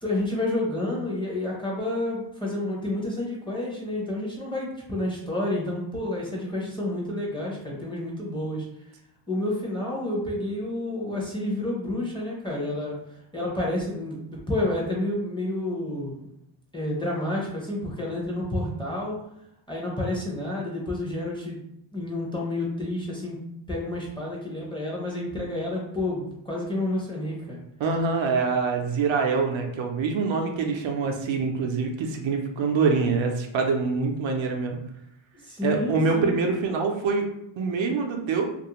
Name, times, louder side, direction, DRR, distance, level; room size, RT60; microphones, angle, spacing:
voice 1, 0.0-8.7 9.3-16.3 16.7-19.2 19.7-21.6 21.9-23.4 23.7-27.6 35.4-36.4, left 1 dB, 10° left, -4 dB, 0.6 m, -29 dB
voice 2, 27.8-34.8 35.6-37.3 37.6-38.5, right 4 dB, 70° right, 2 dB, 0.6 m, -25 dB
2.4 x 2.1 x 2.9 m, 0.79 s
wide cardioid pair, 125°, 48 cm